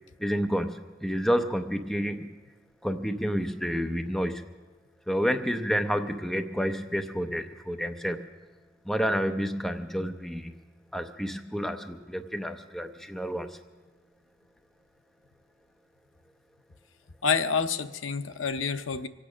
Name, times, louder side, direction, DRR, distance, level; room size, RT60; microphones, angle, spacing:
voice 1, 0.2-2.4 2.8-4.5 5.1-8.2 8.9-10.5 10.9-13.6, equal, ahead, 6 dB, 0.6 m, -29 dB
voice 2, 17.2-19.1, left 5 dB, 75° left, 11 dB, 0.7 m, -28 dB
24.5 x 8.7 x 6.1 m, 1.2 s
head